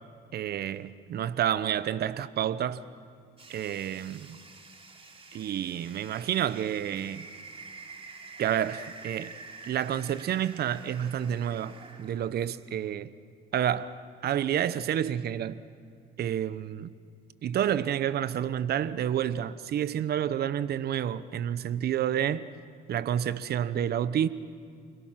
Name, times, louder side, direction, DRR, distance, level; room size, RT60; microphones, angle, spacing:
voice 1, 0.3-2.8 3.5-4.4 5.3-7.3 8.4-9.3 9.6-13.1 13.5-14.0 14.2-15.6 16.2-16.9 17.4-22.5 22.9-24.3, right 10 dB, 55° right, 1.0 m, -29 dB
sound 1, 3.4-12.3, right 3 dB, 30° right, 3.3 m, -48 dB
29.5 x 22.0 x 6.0 m
supercardioid pair, 80°, 19 cm